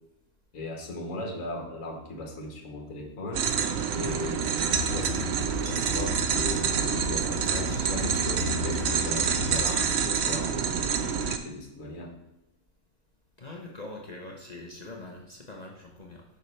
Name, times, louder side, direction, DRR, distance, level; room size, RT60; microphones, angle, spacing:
voice 1, 0.5-3.5 3.9-5.1 5.6-12.1, left 1 dB, 60° left, 0 dB, 1.7 m, -37 dB
sound 1, 3.3-11.4, right 7 dB, 65° right, 0.7 m, -27 dB
sound 2, 4.7-9.8, left 4 dB, 75° left, 1.7 m, -36 dB
voice 2, 13.4-16.2, left 2 dB, 35° left, 0 dB, 0.7 m, -43 dB
6.8 x 6.0 x 3.2 m, 0.95 s
omnidirectional pair, 1.6 m